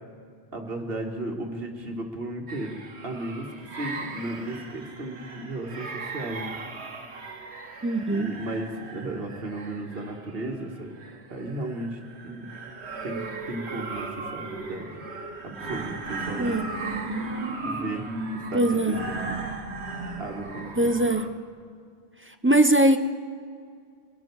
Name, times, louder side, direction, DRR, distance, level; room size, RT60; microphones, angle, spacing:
voice 1, 0.5-6.6 8.1-10.9 11.3-12.5 13.0-14.9 15.4-16.6 17.6-18.1 18.5-19.3 20.2-20.9, right 1 dB, 65° right, 3 dB, 1.9 m, -35 dB
sound 1, 2.5-21.3, right 3 dB, 85° right, 1.6 m, -37 dB
voice 2, 7.8-8.3 16.4-16.6 18.5-19.0 20.8-21.3 22.4-23.0, right 1 dB, 15° right, 8 dB, 0.4 m, -21 dB
23.5 x 12.5 x 4.7 m, 2.2 s
omnidirectional pair, 1.1 m